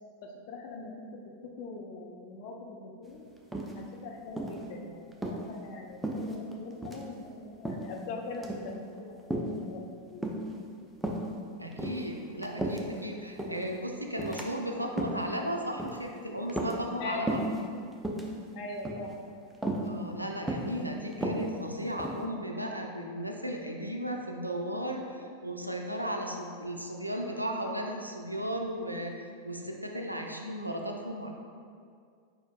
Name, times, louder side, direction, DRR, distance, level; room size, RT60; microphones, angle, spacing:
voice 1, 0.2-0.9 1.4-3.2 3.8-10.3 17.0-17.3 18.6-19.2, left 3 dB, 45° left, 1 dB, 0.5 m, -42 dB
sound 1, 3.5-4.0 4.4-4.6 5.1-5.4 6.0-6.6 6.8-7.0 7.6-8.0 8.3-8.7 9.3-9.6 10.2-10.6 11.0-11.3 11.7-13.0 13.4-13.7 14.2-14.5 14.8-15.3 15.8-16.1 16.5-17.0 17.3-17.6 17.9-18.3 18.8-19.2 19.6-19.9 20.5-20.8 21.1-22.3, right 1 dB, 5° right, 0.4 m, -34 dB
voice 2, 11.6-17.4 19.8-29.1 29.4-31.3, equal, 85° right, 2 dB, 0.4 m, -35 dB
4.7 x 4.3 x 2.3 m, 2.2 s
figure-of-eight pair, 90°, 0 cm